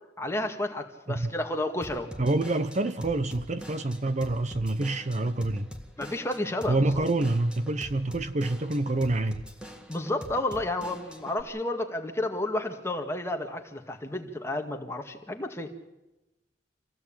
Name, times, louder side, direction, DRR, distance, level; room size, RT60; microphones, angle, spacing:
voice 1, 0.2-2.1 6.0-7.0 9.9-15.7, left 1 dB, 15° left, 2.0 m, -31 dB
Drum kit / Drum, 1.8-11.4, equal, 5° right, 1.9 m, -44 dB
voice 2, 2.2-5.7 6.7-9.4, right 2 dB, 40° right, 0.8 m, -27 dB
26.5 x 16.0 x 8.8 m
head